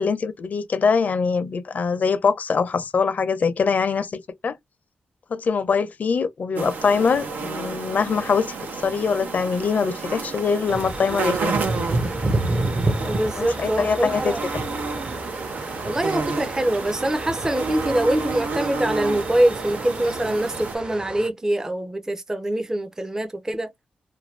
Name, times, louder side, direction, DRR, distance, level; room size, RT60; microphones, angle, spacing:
voice 1, 0.0-4.6 5.3-8.6 8.8-11.5 13.3-14.3, left 5 dB, 60° left, 0.6 m, -23 dB
sound 1, 6.6-20.8, right 4 dB, 75° right, 0.7 m, -31 dB
sound 2, 10.7-21.3, right 2 dB, 40° right, 0.9 m, -30 dB
voice 2, 13.1-14.4 15.8-23.7, right 1 dB, 15° right, 0.6 m, -24 dB
2.6 x 2.2 x 3.2 m
cardioid pair, 65°, 3 cm